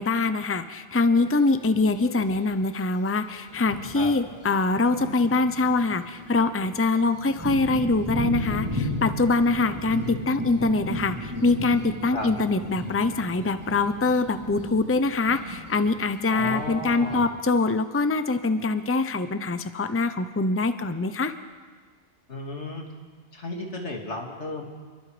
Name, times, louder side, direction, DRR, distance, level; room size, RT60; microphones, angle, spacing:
voice 1, 0.0-21.3, left 3 dB, 15° left, 10 dB, 0.7 m, -24 dB
Thunder, 1.3-1.4 2.4-2.5 3.0-3.1 3.5-17.3, equal, 20° right, 4.7 m, -35 dB
voice 2, 16.3-17.3 22.3-22.8 23.3-24.6, left 2 dB, 80° left, 1 dB, 3.1 m, -34 dB
29.5 x 22.5 x 5.1 m, 1.5 s
omnidirectional pair, 1.2 m